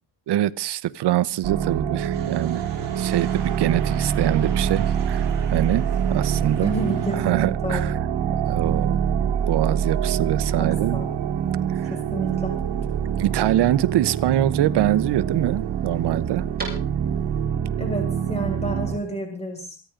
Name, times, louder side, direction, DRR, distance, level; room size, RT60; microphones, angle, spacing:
voice 1, 0.3-6.8 7.2-7.9 8.3-11.0 11.7-11.9 13.2-16.5, right 13 dB, 65° right, 0.8 m, -24 dB
sound 1, 1.4-19.0, right 8 dB, 85° right, 1.5 m, -25 dB
sound 2, 2.1-7.2, right 6 dB, 50° right, 3.7 m, -41 dB
voice 2, 6.6-7.8 10.6-11.1 11.9-12.5 17.8-19.8, right 1 dB, 15° left, 5.8 m, -30 dB
sound 3, 8.9-17.4, right 3 dB, 20° right, 7.4 m, -45 dB
28.0 x 10.0 x 3.7 m
cardioid pair, 130°, 43 cm